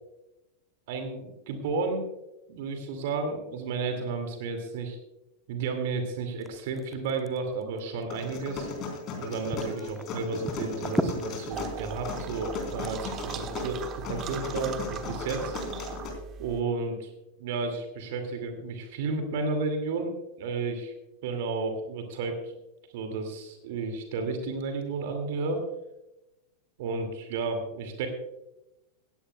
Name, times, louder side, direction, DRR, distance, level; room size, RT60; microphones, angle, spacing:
voice 1, 0.9-2.1 2.5-5.0 5.5-8.7 9.2-15.5 16.4-17.1 17.4-20.9 21.2-22.5 22.9-25.7 26.8-28.1, right 4 dB, 50° right, 5 dB, 2.3 m, -32 dB
sound 1, 6.4-9.1 9.5-14.3, equal, ahead, 0.9 m, -36 dB
sound 2, 8.1-16.1, left 4 dB, 35° left, 3.9 m, -37 dB
sound 3, 11.5-16.6, right 6 dB, 30° right, 1.2 m, -39 dB
18.0 x 16.0 x 2.3 m, 0.94 s
figure-of-eight pair, 90°, 0 cm